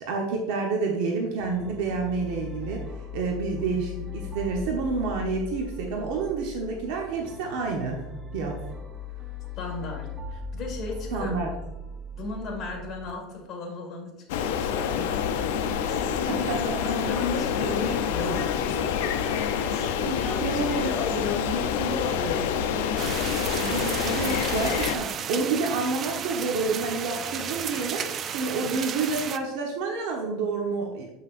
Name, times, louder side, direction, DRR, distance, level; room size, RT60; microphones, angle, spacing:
voice 1, 0.0-8.0 8.3-8.6 11.1-11.5 16.3-16.6 16.9-17.0 19.7-20.9 21.3-21.5 23.6-31.1, right 4 dB, 75° right, 0 dB, 1.0 m, -29 dB
sound 1, 1.4-13.1, left 2 dB, 10° right, 0.7 m, -38 dB
voice 2, 9.6-11.3 12.1-15.3 15.6-19.3 19.7-22.7 23.2-23.5, left 4 dB, 35° left, 0 dB, 1.7 m, -34 dB
sound 2, 14.3-25.0, left 8 dB, 90° left, 0.5 m, -27 dB
sound 3, 23.0-29.4, right 8 dB, 30° right, 0.3 m, -33 dB
7.5 x 5.8 x 2.5 m, 0.95 s
supercardioid pair, 150°, 0 cm